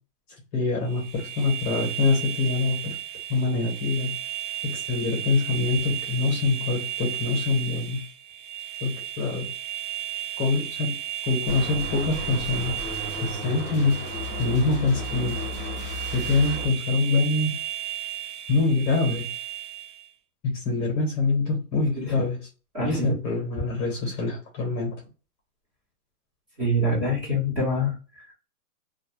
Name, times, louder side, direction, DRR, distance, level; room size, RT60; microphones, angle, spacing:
voice 1, 0.5-3.0 3.3-4.1 4.6-8.0 8.8-8.9 9.2-9.5 10.4-10.9 11.3-12.9 13.2-14.0 14.4-15.4 16.1-17.5 18.5-19.2 20.4-22.4 22.8-24.9, left 3 dB, 20° left, -2 dB, 0.9 m, -25 dB
sound 1, 0.9-20.1, right 11 dB, 90° right, 0.8 m, -34 dB
sound 2, 11.5-16.7, left 1 dB, 5° left, 0.4 m, -34 dB
voice 2, 21.9-22.3 22.7-23.2 26.6-28.3, left 1 dB, 20° right, -5 dB, 0.9 m, -26 dB
2.3 x 2.1 x 3.0 m, 0.34 s
hypercardioid pair, 155°, 48 cm